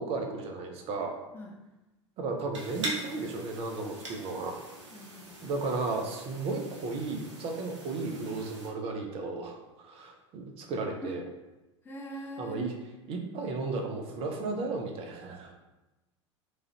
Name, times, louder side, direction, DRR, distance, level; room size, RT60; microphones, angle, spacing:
voice 1, 0.0-1.2 2.2-4.6 5.4-11.2 12.4-12.7 13.1-15.5, right 3 dB, 35° right, 3 dB, 0.5 m, -34 dB
sound 1, 2.5-8.7, right 2 dB, 75° right, 0.7 m, -42 dB
voice 2, 4.9-5.4 11.0-11.1 11.8-12.6, right 1 dB, 15° left, -1 dB, 0.4 m, -42 dB
3.1 x 2.4 x 2.7 m, 1.0 s
figure-of-eight pair, 80°, 16 cm